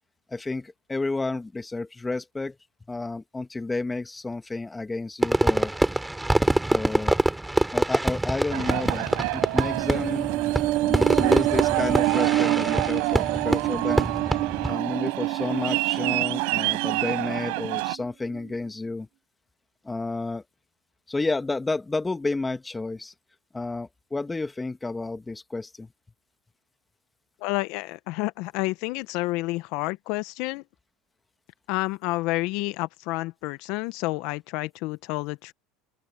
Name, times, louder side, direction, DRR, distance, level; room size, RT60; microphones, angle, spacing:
voice 1, 0.3-2.6 2.9-5.7 6.7-7.1 7.7-10.3 10.9-14.1 14.6-19.1 19.8-20.4 21.1-23.1 23.5-25.9, left 3 dB, 10° left, 1.8 m, -31 dB
Fireworks, 5.2-14.7, right 1 dB, 5° right, 3.2 m, -25 dB
Aircraft, 8.5-17.9, right 30 dB, 75° right, 5.2 m, -29 dB
sound 1, 9.6-18.0 18.3-18.5, right 17 dB, 60° right, 0.5 m, -27 dB
voice 2, 27.4-30.6 31.7-35.5, left 21 dB, 65° left, 0.9 m, -29 dB
open air
supercardioid pair, 110°, 0 cm